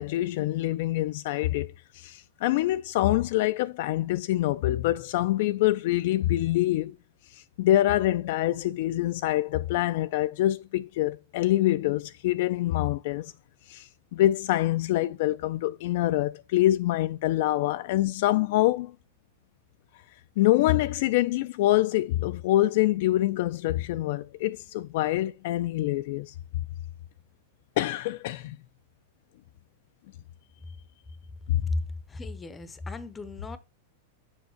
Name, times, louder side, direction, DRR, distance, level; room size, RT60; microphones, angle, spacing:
voice 1, 0.0-7.0 7.3-13.3 13.7-18.9 20.4-26.3 27.8-28.6 31.5-31.6, left 15 dB, 55° left, 0.3 m, -25 dB
voice 2, 32.1-33.6, left 2 dB, 10° left, 0.6 m, -34 dB
7.1 x 4.7 x 4.4 m
supercardioid pair, 160°, 0 cm